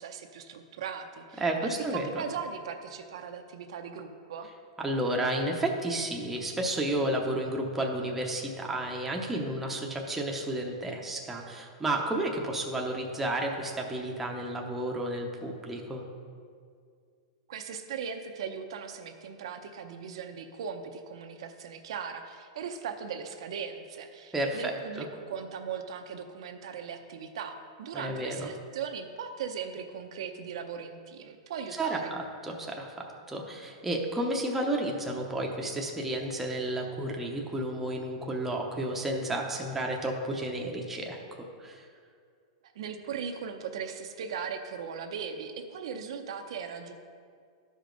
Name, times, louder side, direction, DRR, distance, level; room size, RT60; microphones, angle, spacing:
voice 1, 0.0-4.5 17.5-32.1 42.7-46.9, right 6 dB, 70° right, 5 dB, 0.7 m, -38 dB
voice 2, 1.4-2.2 4.8-16.0 24.3-24.7 25.0-25.1 27.9-28.5 31.8-41.8, right 1 dB, 5° right, 0 dB, 0.8 m, -32 dB
12.0 x 5.0 x 3.9 m, 2.2 s
supercardioid pair, 150°, 3 cm